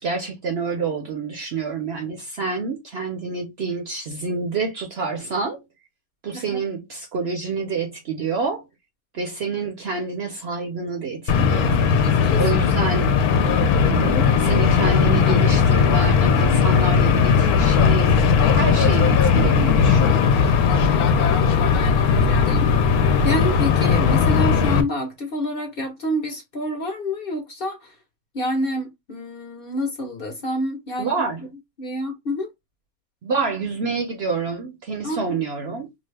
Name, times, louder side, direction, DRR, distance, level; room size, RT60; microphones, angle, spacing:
voice 1, 0.0-5.6 6.2-8.6 9.1-11.8 12.4-13.1 13.8-20.4 31.0-31.4 33.2-35.9, right 4 dB, 60° right, 0.7 m, -28 dB
sound 1, 11.3-24.8, left 6 dB, 85° left, 1.1 m, -18 dB
voice 2, 11.9-12.4 20.8-22.7 23.2-27.9 28.3-31.1 31.8-32.5 35.0-35.4, equal, 50° left, 0.8 m, -28 dB
2.7 x 2.4 x 3.2 m
omnidirectional pair, 1.5 m